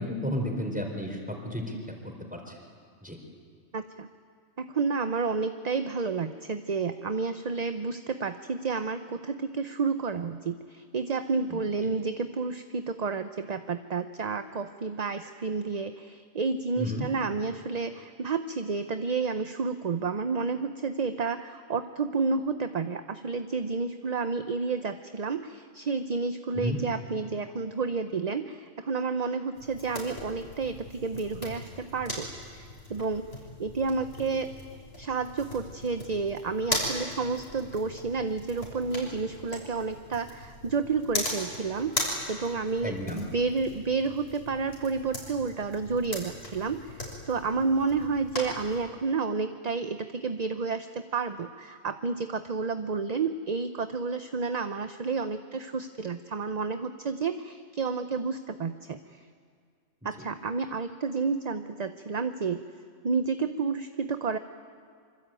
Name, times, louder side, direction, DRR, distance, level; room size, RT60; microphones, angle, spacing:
voice 1, 0.0-1.8 2.3-2.5 3.0-3.2 16.8-17.1 26.6-26.8 42.8-43.3, left 1 dB, 5° right, 2 dB, 4.1 m, -32 dB
voice 2, 3.7-4.1 4.6-33.3 33.6-34.5 35.0-59.3 60.0-62.6 63.0-64.4, right 4 dB, 40° right, 9 dB, 0.8 m, -30 dB
sound 1, 29.5-48.8, left 1 dB, 50° left, 6.5 m, -39 dB
26.0 x 25.0 x 9.0 m, 2.1 s
omnidirectional pair, 1.3 m